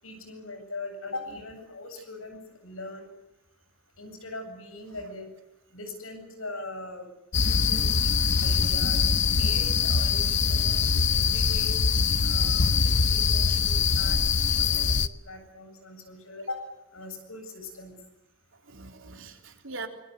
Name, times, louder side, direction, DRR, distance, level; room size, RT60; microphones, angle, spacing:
voice 1, 0.0-3.1 4.0-5.3 5.7-7.1 7.5-8.1 8.4-9.1 9.4-11.8 12.2-17.9, left 2 dB, 75° left, 6 dB, 7.9 m, -41 dB
sound 1, 7.3-15.1, left 5 dB, 55° left, 0.9 m, -23 dB
voice 2, 10.4-10.8 11.1-11.2 13.5-14.6 18.5-19.9, right 3 dB, 65° right, 4 dB, 3.8 m, -44 dB
25.5 x 23.5 x 8.2 m, 0.84 s
head